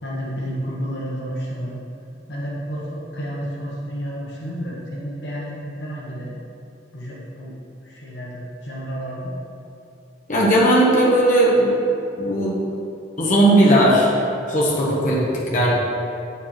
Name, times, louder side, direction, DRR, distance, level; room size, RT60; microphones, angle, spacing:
voice 1, 0.0-1.8 2.3-6.3 6.9-7.6 7.8-9.3, equal, 60° left, -4 dB, 1.2 m, -31 dB
voice 2, 10.3-11.7 12.2-12.6 13.2-14.1 14.5-15.7, right 1 dB, 40° left, -5 dB, 1.2 m, -17 dB
8.1 x 5.3 x 4.4 m, 2.7 s
head